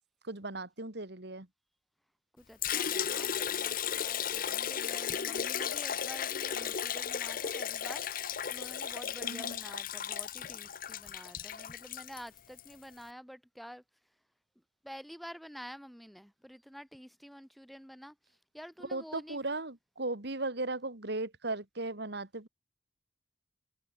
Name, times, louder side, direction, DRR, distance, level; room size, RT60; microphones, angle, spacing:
voice 1, 0.2-1.5 9.2-9.6 18.9-22.5, right 2 dB, 60° right, 2.5 m, -37 dB
voice 2, 2.3-14.2 14.8-19.4, equal, ahead, 4.1 m, -49 dB
Liquid, 2.6-12.7, left 8 dB, 50° left, 0.9 m, -35 dB
head